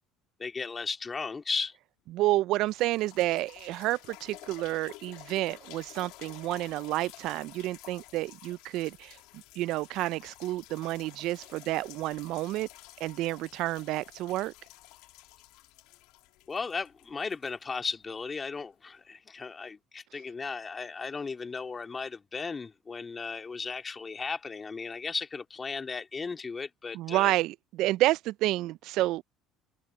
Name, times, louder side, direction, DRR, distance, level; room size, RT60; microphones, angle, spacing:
voice 1, 0.4-1.8 16.5-27.3, left 4 dB, 25° left, 2.6 m, -36 dB
sound 1, 2.1-2.2 2.6-18.3 19.0-19.1, left 20 dB, 75° left, 2.4 m, -52 dB
voice 2, 2.1-9.2 9.6-12.7 13.0-14.5 26.9-29.2, right 17 dB, 65° right, 0.3 m, -29 dB
supercardioid pair, 95°, 0 cm